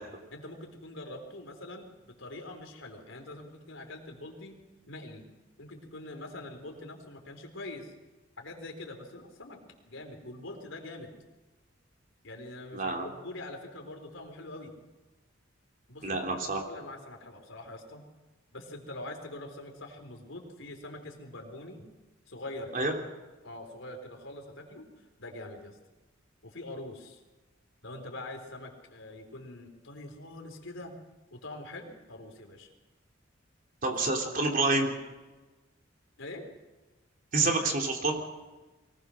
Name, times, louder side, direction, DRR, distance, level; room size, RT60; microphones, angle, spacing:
voice 1, 0.3-1.9 2.2-4.6 4.9-5.2 5.6-7.9 8.4-9.6 9.9-11.1 12.2-14.8 15.9-18.0 18.5-21.9 22.3-22.9 23.4-24.9 25.2-25.8 26.4-27.2 27.8-30.9 31.3-32.7 33.8-34.0 36.2-36.4, left 2 dB, 75° left, 3 dB, 4.1 m, -44 dB
voice 2, 12.7-13.1 16.0-16.6 22.7-22.9 33.8-34.9 37.3-38.1, right 3 dB, 45° right, 2 dB, 3.4 m, -27 dB
23.5 x 18.5 x 6.4 m, 1.2 s
head